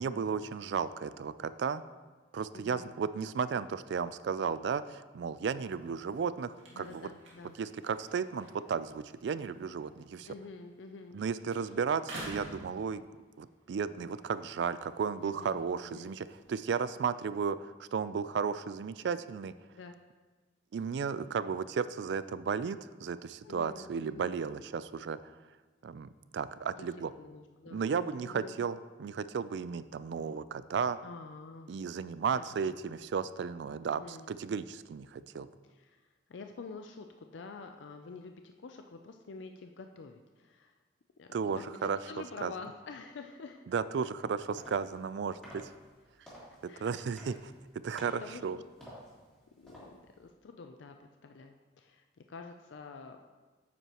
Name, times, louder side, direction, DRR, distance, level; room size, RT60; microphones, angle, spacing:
voice 1, 0.0-1.8 2.3-7.1 7.6-10.3 11.1-13.0 13.4-19.5 20.7-25.2 25.8-27.1 27.7-31.0 31.7-35.5 41.3-42.0 42.4-42.5 43.7-45.7 46.8-47.5 47.8-48.6, right 6 dB, 65° right, 14 dB, 0.3 m, -34 dB
voice 2, 2.5-3.0 6.7-7.6 10.3-11.2 15.2-16.2 19.7-19.9 23.4-24.5 26.8-26.9 27.2-28.6 31.0-31.7 32.4-32.8 33.8-34.3 35.6-40.7 41.2-43.7 46.7-47.1 48.2-48.7 49.6-53.2, left 4 dB, 75° left, 5 dB, 0.4 m, -48 dB
sound 1, 5.5-11.2 11.5-13.5 14.0-17.0, right 1 dB, 90° right, 2.0 m, -51 dB
sound 2, 44.2-50.3, equal, 5° left, 2.8 m, -54 dB
9.3 x 8.0 x 3.0 m, 1.3 s
head